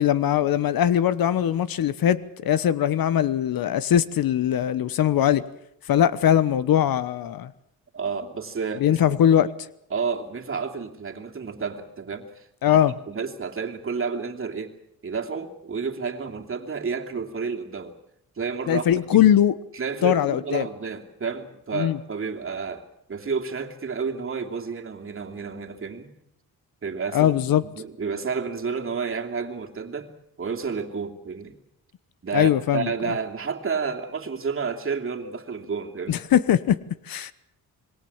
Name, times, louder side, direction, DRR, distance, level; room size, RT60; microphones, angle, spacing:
voice 1, 0.0-5.4 5.9-7.5 8.8-9.5 12.6-12.9 18.7-19.6 20.0-20.7 21.7-22.0 27.1-27.6 32.3-33.1 36.1-36.8 37.1-37.3, left 10 dB, 70° left, 16 dB, 1.1 m, -21 dB
voice 2, 7.9-9.0 9.9-12.8 13.1-14.7 15.0-18.0 18.4-19.2 19.7-26.1 26.8-27.3 27.7-30.1 30.4-31.6 32.2-36.2, right 5 dB, 35° right, 3 dB, 2.8 m, -30 dB
26.5 x 21.5 x 7.3 m, 0.77 s
cardioid pair, 100°, 36 cm